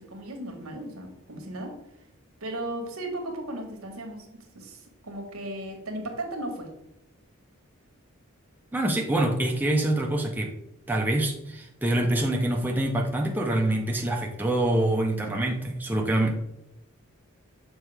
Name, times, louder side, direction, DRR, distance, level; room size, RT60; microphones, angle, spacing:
voice 1, 0.0-1.8 2.4-6.7, right 1 dB, 90° right, 3 dB, 1.3 m, -36 dB
voice 2, 8.7-10.5 10.9-16.3, right 1 dB, 10° right, 0 dB, 0.5 m, -25 dB
6.5 x 4.4 x 3.3 m, 0.82 s
head